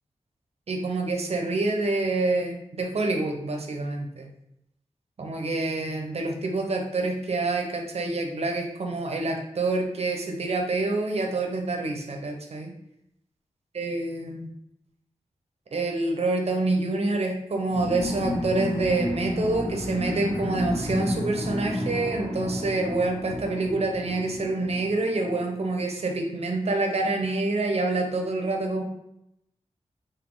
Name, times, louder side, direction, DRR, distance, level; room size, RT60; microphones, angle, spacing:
voice 1, 0.7-4.3 5.2-12.7 13.7-14.5 15.7-28.8, right 2 dB, 65° right, 3 dB, 0.7 m, -27 dB
sound 1, 17.7-25.8, left 1 dB, 75° left, 1.1 m, -31 dB
4.0 x 2.6 x 3.8 m, 0.81 s
cardioid pair, 60°, 12 cm